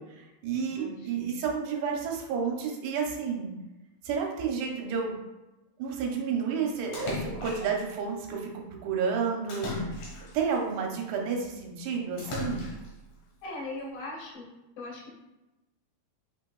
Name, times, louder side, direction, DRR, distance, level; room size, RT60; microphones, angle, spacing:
voice 1, 0.0-3.5 4.0-5.1 5.8-8.5 8.8-9.9 10.3-12.7, right 6 dB, 85° right, 0 dB, 2.7 m, -31 dB
voice 2, 0.8-1.4 13.4-14.5 14.8-15.1, left 2 dB, 85° left, -4 dB, 3.5 m, -40 dB
Splash splatter, 6.9-7.9 9.5-10.6 12.2-13.0, left 2 dB, 70° left, 1.5 m, -36 dB
7.9 x 3.0 x 2.2 m, 1.0 s
omnidirectional pair, 4.6 m